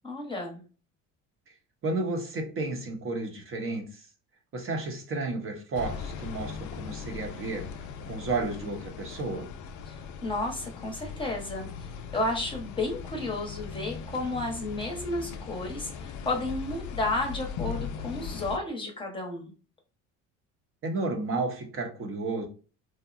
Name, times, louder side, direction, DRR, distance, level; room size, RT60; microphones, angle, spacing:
voice 1, 0.0-0.6 9.9-19.5, left 2 dB, 15° left, 1 dB, 0.8 m, -32 dB
voice 2, 1.8-4.1 4.5-9.5 20.8-22.5, right 3 dB, 40° right, 3 dB, 0.7 m, -32 dB
sound 1, 5.7-18.6, left 6 dB, 60° left, 0.4 m, -39 dB
2.8 x 2.1 x 2.4 m, 0.36 s
supercardioid pair, 85°, 34 cm